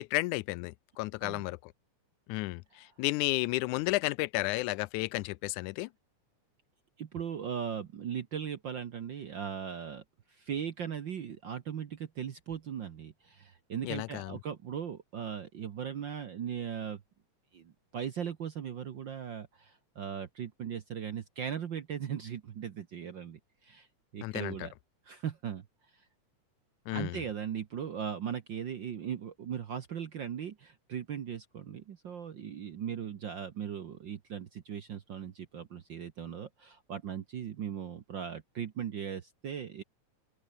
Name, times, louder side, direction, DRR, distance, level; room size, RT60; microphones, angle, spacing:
voice 1, 0.0-1.7 2.3-5.9 13.8-14.4 24.2-24.7 26.9-27.2, left 21 dB, 85° left, 2.0 m, -32 dB
voice 2, 7.0-17.0 17.5-23.9 24.1-24.7 25.0-25.6 25.9-26.0 26.9-39.8, right 8 dB, 55° right, 1.3 m, -38 dB
open air
omnidirectional pair, 3.4 m